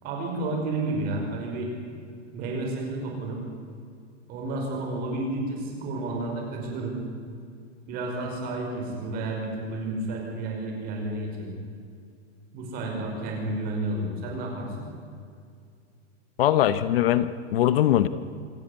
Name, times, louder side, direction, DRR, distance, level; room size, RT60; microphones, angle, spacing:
voice 1, 0.0-1.7 2.3-3.4 4.3-7.0 7.9-11.5 12.5-14.9, right 2 dB, 25° right, 1 dB, 5.3 m, -31 dB
voice 2, 16.4-18.1, left 12 dB, 55° left, 14 dB, 1.0 m, -21 dB
26.5 x 14.5 x 9.7 m, 2.3 s
supercardioid pair, 180°, 35 cm